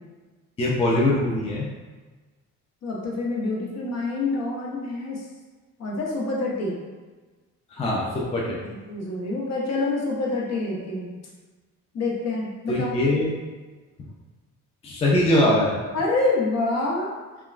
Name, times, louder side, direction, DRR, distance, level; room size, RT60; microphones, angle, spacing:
voice 1, 0.6-1.7 7.7-8.6 12.7-13.3 14.8-15.8, left 1 dB, 20° left, -4 dB, 0.4 m, -22 dB
voice 2, 2.8-5.2 5.8-6.8 8.9-11.1 11.9-12.9 15.9-17.1, left 2 dB, 50° left, -3 dB, 0.8 m, -26 dB
2.9 x 2.2 x 2.4 m, 1.3 s
cardioid pair, 95°, 33 cm